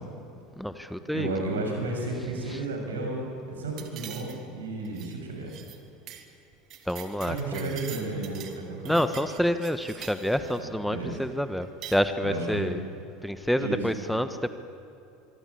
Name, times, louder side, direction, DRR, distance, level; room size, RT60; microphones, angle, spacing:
voice 1, 0.6-1.3 6.9-7.6 8.8-12.8 13.2-14.5, equal, ahead, 10 dB, 1.2 m, -28 dB
voice 2, 1.1-5.5 7.2-9.0 10.4-11.2 12.2-12.7 13.6-13.9, right 2 dB, 80° right, 2 dB, 6.7 m, -33 dB
sound 1, 3.8-4.6 4.8-5.1 5.5-5.8 6.1-6.3 6.5-8.6 8.8-10.6 11.6-12.0, right 10 dB, 50° right, 2.7 m, -44 dB
25.0 x 24.0 x 8.6 m, 2.7 s
figure-of-eight pair, 75°, 0 cm